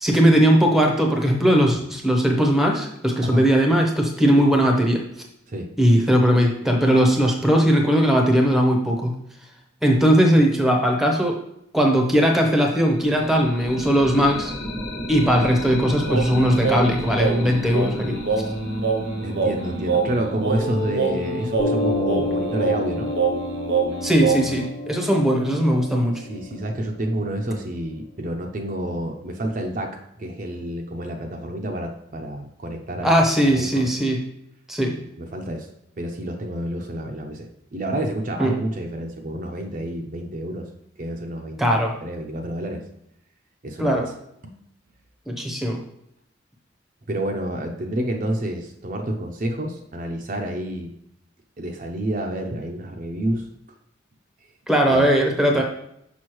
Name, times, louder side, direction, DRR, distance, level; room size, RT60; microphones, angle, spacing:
voice 1, 0.0-5.0 5.8-9.2 9.8-11.4 11.7-14.5 15.1-18.2 24.0-26.2 33.0-34.2 34.7-35.0 38.4-38.6 41.6-41.9 43.8-44.1 45.3-45.8 54.7-55.6, equal, ahead, 1 dB, 0.7 m, -19 dB
sound 1, 12.6-22.4, equal, 50° left, 1.3 m, -34 dB
Singing, 16.1-24.7, right 4 dB, 70° right, 0.8 m, -26 dB
voice 2, 19.2-23.1 26.1-33.9 35.2-35.7 36.0-40.7 41.0-42.9 43.6-44.1 47.1-50.9 51.6-53.5 54.9-55.1 55.6-55.7, right 1 dB, 40° right, 2 dB, 0.5 m, -29 dB
Piano, 20.6-27.6, left 1 dB, 75° left, 1.0 m, -30 dB
6.2 x 5.3 x 3.0 m, 0.76 s
head